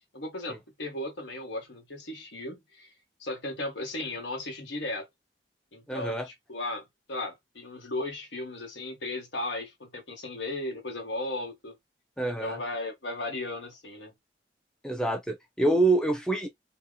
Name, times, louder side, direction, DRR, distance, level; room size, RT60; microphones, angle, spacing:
voice 1, 0.1-2.9 3.2-5.1 5.7-11.8 12.4-14.1, left 2 dB, 85° left, 1.2 m, -36 dB
voice 2, 5.9-6.2 12.2-12.6 14.8-16.5, right 2 dB, 5° left, 0.4 m, -26 dB
2.8 x 2.0 x 3.6 m
head